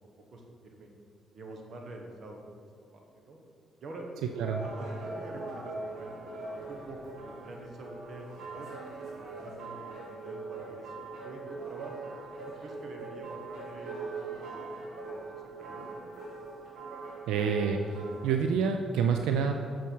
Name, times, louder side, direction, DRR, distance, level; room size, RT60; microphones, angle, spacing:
voice 1, 0.3-0.9 1.3-2.4 2.9-3.4 3.8-4.1 4.6-8.7 9.1-12.0 12.5-15.9, right 2 dB, 55° right, 1 dB, 1.2 m, -47 dB
voice 2, 4.2-4.7 17.3-19.5, right 6 dB, 90° right, 5 dB, 0.4 m, -28 dB
sound 1, 4.3-18.4, right 3 dB, 75° right, 1.8 m, -41 dB
7.0 x 5.9 x 4.6 m, 2.2 s
cardioid pair, 90°, 0 cm